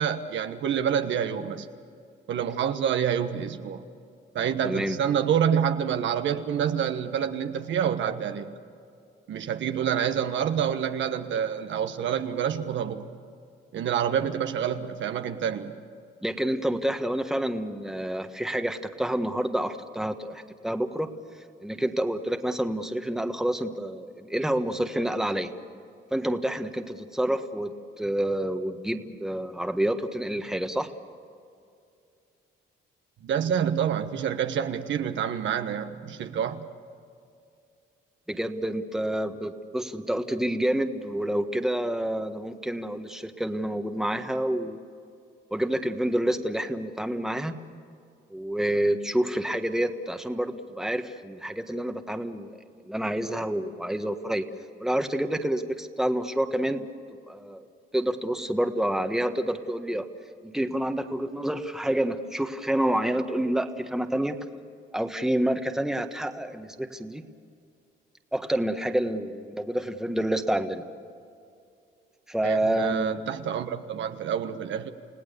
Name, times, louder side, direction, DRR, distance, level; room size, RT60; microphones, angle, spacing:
voice 1, 0.0-1.7 2.3-3.8 4.3-8.5 9.3-13.1 13.7-15.7 33.2-36.6 72.4-74.9, right 8 dB, 70° right, 7 dB, 1.3 m, -27 dB
voice 2, 4.6-5.0 16.2-21.1 21.6-25.5 26.1-27.7 28.0-30.9 38.3-44.8 45.5-47.6 48.3-52.6 52.9-54.4 54.8-56.9 57.3-57.7 57.9-60.0 60.4-64.4 64.9-67.2 68.3-70.8 72.3-73.3, right 1 dB, ahead, 6 dB, 1.5 m, -28 dB
30.0 x 17.5 x 6.9 m, 2.4 s
cardioid pair, 90°, 20 cm